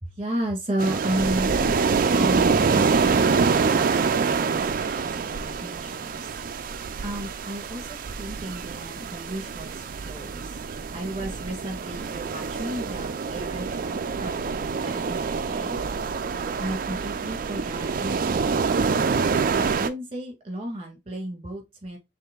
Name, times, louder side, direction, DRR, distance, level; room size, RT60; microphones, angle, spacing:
voice 1, 0.0-6.3 7.0-10.6 10.9-14.4 14.8-15.8 16.6-18.9 19.5-22.0, right 1 dB, 35° right, 2.1 m, -33 dB
sound 1, 0.8-19.9, right 5 dB, 50° right, 0.4 m, -26 dB
6.5 x 3.5 x 2.3 m
head